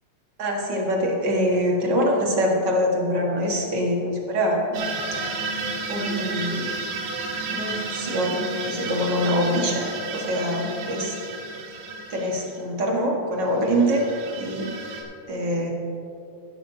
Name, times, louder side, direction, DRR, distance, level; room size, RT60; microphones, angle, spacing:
voice 1, 0.4-4.8 5.9-6.8 7.5-9.9 10.1-11.1 12.1-14.0 14.4-14.7 15.3-15.7, equal, 45° right, -1 dB, 1.5 m, -24 dB
sound 1, 4.7-12.6 13.7-15.0, right 3 dB, 85° right, 3.1 m, -32 dB
15.5 x 12.0 x 2.7 m, 2.7 s
omnidirectional pair, 3.8 m